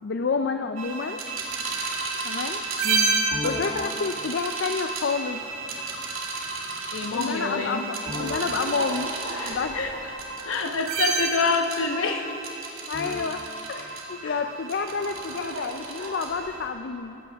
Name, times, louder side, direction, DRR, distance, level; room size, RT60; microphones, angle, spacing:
voice 1, 0.0-1.2 2.2-2.6 3.0-5.4 7.1-9.1 9.5-9.8 12.9-13.4 13.7-17.2, left 5 dB, 55° left, 7 dB, 0.4 m, -29 dB
sound 1, 0.8-16.7, right 3 dB, 80° right, 2.4 m, -31 dB
voice 2, 2.8-3.2 6.9-7.8 9.3-10.2 10.4-12.3 14.2-14.4, left 4 dB, 75° left, 5 dB, 1.1 m, -27 dB
18.0 x 16.0 x 3.5 m, 2.8 s
head